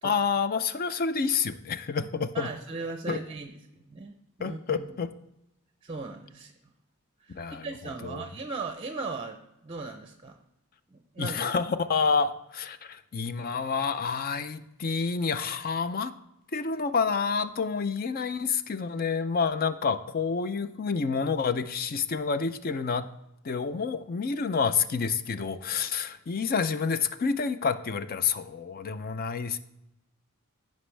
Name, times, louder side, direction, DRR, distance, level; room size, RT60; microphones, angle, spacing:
voice 1, 0.0-2.5 3.1-3.2 4.4-5.1 7.3-7.7 8.0-8.3 11.2-16.1 16.5-23.1 23.4-29.6, left 5 dB, 40° left, 11 dB, 0.5 m, -28 dB
voice 2, 2.3-4.1 4.4-4.9 5.8-6.5 7.2-10.4 10.9-11.5, right 3 dB, 25° right, 6 dB, 0.6 m, -38 dB
15.5 x 5.3 x 3.3 m, 0.88 s
head